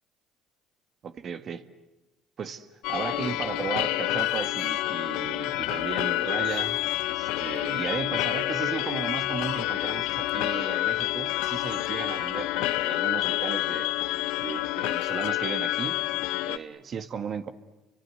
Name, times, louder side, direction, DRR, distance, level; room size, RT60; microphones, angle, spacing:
voice 1, 1.0-1.7 2.4-13.9 14.4-16.0 16.4-17.5, right 6 dB, 50° right, 1.7 m, -35 dB
sound 1, 2.8-16.6, left 16 dB, 75° left, 0.9 m, -28 dB
30.0 x 24.5 x 8.0 m
supercardioid pair, 70°, 0 cm